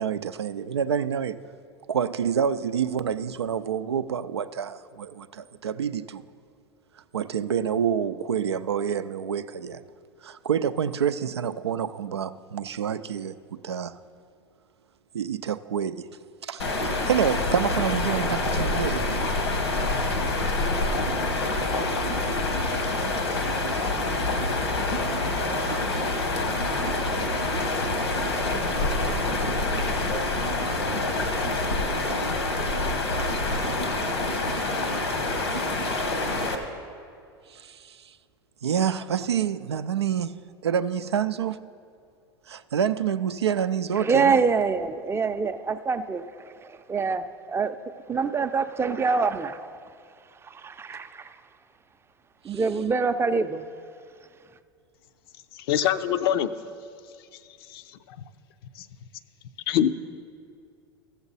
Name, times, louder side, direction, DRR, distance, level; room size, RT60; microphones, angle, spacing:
voice 1, 0.0-1.4 1.9-6.2 7.1-9.8 10.2-14.0 15.1-16.1 16.4-19.2 37.5-38.2 38.6-41.7 42.5-44.4 52.5-52.6, right 8 dB, 90° right, 0.4 m, -28 dB
sound 1, 16.6-36.6, left 2 dB, 85° left, 1.2 m, -26 dB
voice 2, 44.0-47.7 48.1-49.6 50.5-51.3 52.4-53.6, right 5 dB, 20° right, 0.5 m, -25 dB
voice 3, 55.5-56.5 57.7-57.8 58.8-58.9 59.7-59.9, left 10 dB, 65° left, 0.5 m, -23 dB
15.0 x 7.1 x 4.0 m
hypercardioid pair, 85°, 13 cm